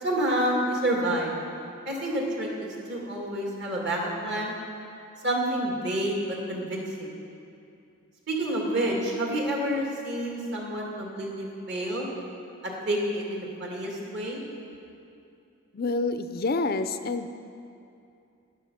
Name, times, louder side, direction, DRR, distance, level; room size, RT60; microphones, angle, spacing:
voice 1, 0.0-1.3 1.9-4.5 5.2-7.2 8.3-12.1 12.6-14.4, right 1 dB, 55° right, -2 dB, 2.4 m, -29 dB
voice 2, 15.7-17.3, left 3 dB, 45° left, 10 dB, 0.4 m, -27 dB
12.5 x 11.0 x 5.8 m, 2.6 s
head